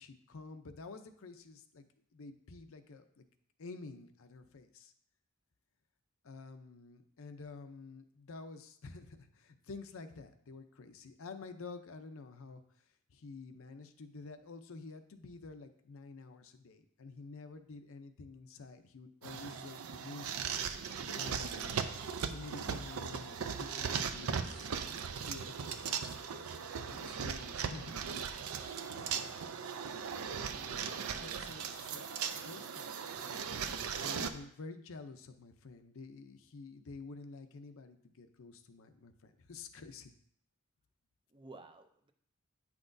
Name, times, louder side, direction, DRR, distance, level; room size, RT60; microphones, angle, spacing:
voice 1, 0.0-1.8 2.1-3.2 3.6-4.9 6.2-12.6 13.1-20.3 21.1-21.8 22.2-24.7 25.2-26.2 26.9-28.5 28.9-29.1 30.5-40.1, left 3 dB, 70° left, 8 dB, 0.6 m, -50 dB
sound 1, 19.2-34.3, right 6 dB, 75° right, 0.5 m, -38 dB
voice 2, 28.4-29.2 41.3-42.1, right 3 dB, 25° right, 7 dB, 0.4 m, -55 dB
8.9 x 5.9 x 2.6 m, 0.65 s
head